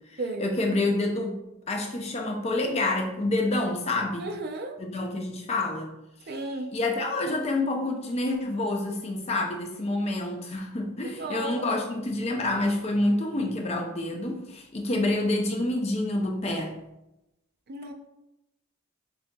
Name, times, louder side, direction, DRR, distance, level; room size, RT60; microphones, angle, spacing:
voice 1, 0.1-1.4 1.7-4.3 4.8-5.9 6.2-16.7, left 2 dB, 30° left, 2 dB, 0.5 m, -28 dB
voice 2, 4.2-4.8 6.3-6.7 11.2-11.5 17.7-17.9, right 2 dB, 50° right, 5 dB, 0.5 m, -33 dB
6.1 x 2.7 x 2.2 m, 0.90 s
head